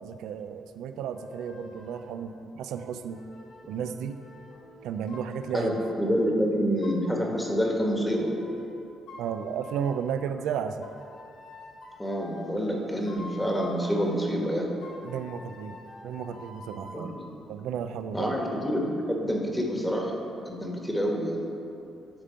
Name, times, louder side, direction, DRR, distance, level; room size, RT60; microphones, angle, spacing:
voice 1, 0.0-3.2 3.7-4.2 4.8-5.8 9.2-10.9 15.0-15.8 16.0-17.2 17.5-18.3, right 8 dB, 85° right, 9 dB, 0.3 m, -33 dB
sound 1, 1.1-2.2 2.7-6.2 6.8-8.7 9.1-10.1 10.8-14.1 14.8-17.0, left 2 dB, 90° left, 1.6 m, -47 dB
voice 2, 5.5-8.3 12.0-14.7 16.9-17.3 18.1-20.1 20.4-21.4, equal, 10° left, -1 dB, 1.2 m, -27 dB
10.0 x 3.7 x 5.6 m, 2.6 s
cardioid pair, 90°, 0 cm